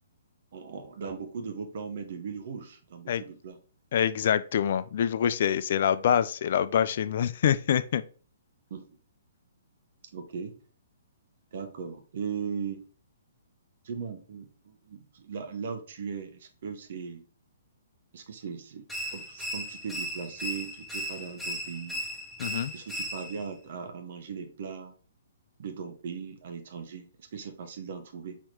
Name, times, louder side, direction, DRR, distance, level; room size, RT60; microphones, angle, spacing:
voice 1, 0.5-3.6 8.7-8.9 10.1-10.6 11.5-12.8 13.8-17.2 18.1-18.9 19.1-22.1 22.7-24.9 25.6-28.4, right 6 dB, 55° right, 0.9 m, -38 dB
voice 2, 3.9-8.0 22.4-22.7, left 9 dB, 55° left, 0.3 m, -25 dB
sound 1, 18.9-23.5, equal, 5° left, 0.7 m, -36 dB
4.2 x 2.9 x 3.2 m
figure-of-eight pair, 125°, 0 cm